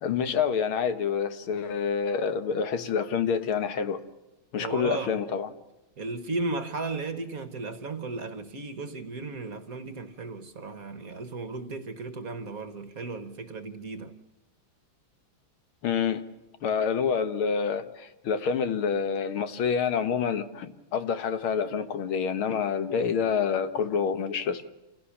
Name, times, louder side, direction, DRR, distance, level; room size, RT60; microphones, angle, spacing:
voice 1, 0.0-4.0 4.5-5.5 15.8-16.3 16.6-24.6, left 6 dB, 80° left, 2.1 m, -27 dB
voice 2, 4.6-5.2 6.0-14.2, right 3 dB, 45° right, 1.4 m, -35 dB
28.0 x 16.5 x 7.2 m
omnidirectional pair, 2.3 m